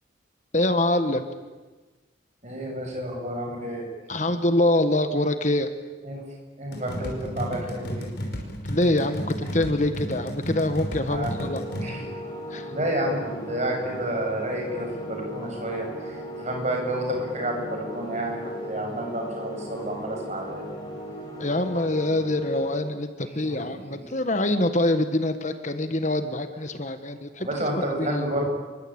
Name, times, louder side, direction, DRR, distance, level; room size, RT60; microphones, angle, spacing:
voice 1, 0.5-1.2 4.1-5.7 8.6-11.9 12.5-12.7 21.4-27.5 28.0-28.3, left 1 dB, 40° left, 8 dB, 1.5 m, -25 dB
voice 2, 2.4-3.8 6.0-6.2 6.6-8.1 11.1-11.3 11.8-12.0 12.7-20.7 23.5-23.6 27.4-28.5, right 1 dB, 35° right, 1 dB, 7.6 m, -30 dB
sound 1, 6.7-11.9, equal, 55° left, 5.9 m, -33 dB
sound 2, 10.8-22.7, equal, 20° left, 7.1 m, -37 dB
28.0 x 23.5 x 9.0 m, 1.2 s
head